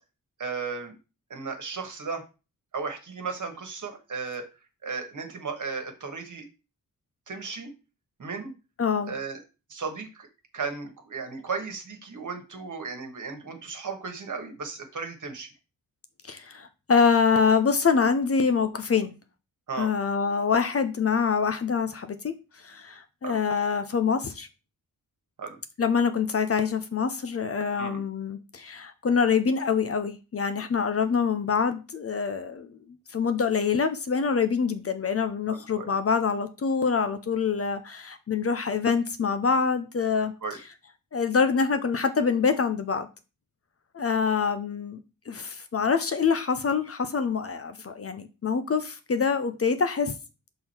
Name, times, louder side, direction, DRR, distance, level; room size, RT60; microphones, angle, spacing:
voice 1, 0.4-0.9 1.3-2.2 2.7-4.4 4.8-6.5 7.3-7.7 8.2-8.5 9.1-9.4 9.7-10.3 10.5-15.5 19.7-19.9 23.2-23.4 25.4-25.6 27.8-28.0 35.5-35.9 40.4-40.6, right 5 dB, 55° right, 5 dB, 1.5 m, -35 dB
voice 2, 8.8-9.1 16.3-19.1 19.8-24.5 25.8-32.7 33.1-40.3 41.1-43.1 43.9-45.0 45.3-50.1, left 5 dB, 40° left, 9 dB, 0.7 m, -25 dB
6.2 x 3.8 x 4.3 m, 0.31 s
wide cardioid pair, 110°, 36 cm